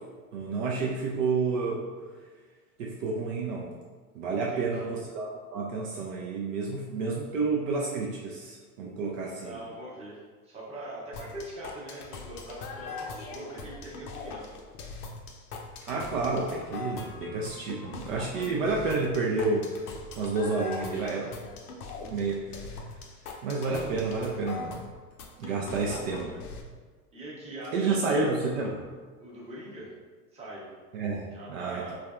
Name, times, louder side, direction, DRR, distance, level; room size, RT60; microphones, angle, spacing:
voice 1, 0.3-1.8 2.8-3.7 4.1-9.5 15.9-19.7 20.2-21.3 22.1-22.4 23.4-24.8 25.4-26.2 27.7-28.8 30.9-31.8, right 3 dB, 60° right, -2 dB, 0.5 m, -30 dB
voice 2, 4.3-4.9 9.4-14.4 25.6-26.4 27.1-28.4 29.2-30.0 30.3-30.7 31.3-32.0, right 1 dB, 15° right, -8 dB, 0.9 m, -42 dB
sound 1, 11.1-26.6, left 4 dB, 70° left, 0.6 m, -41 dB
3.3 x 2.3 x 2.4 m, 1.4 s
hypercardioid pair, 110°, 46 cm